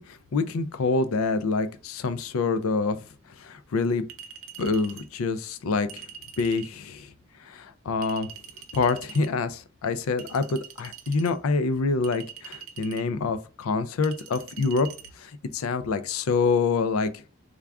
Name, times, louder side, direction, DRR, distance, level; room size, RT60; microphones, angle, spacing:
voice 1, 0.0-3.0 3.4-4.0 4.6-6.1 6.4-7.1 7.4-8.3 8.7-14.9 15.2-17.1, left 4 dB, 80° left, 0.4 m, -26 dB
Chink clink, 4.1-5.1 5.9-6.7 8.0-9.3 10.2-11.3 12.0-13.1 14.0-15.1, right 7 dB, 85° right, 0.5 m, -44 dB
3.5 x 2.3 x 3.4 m
head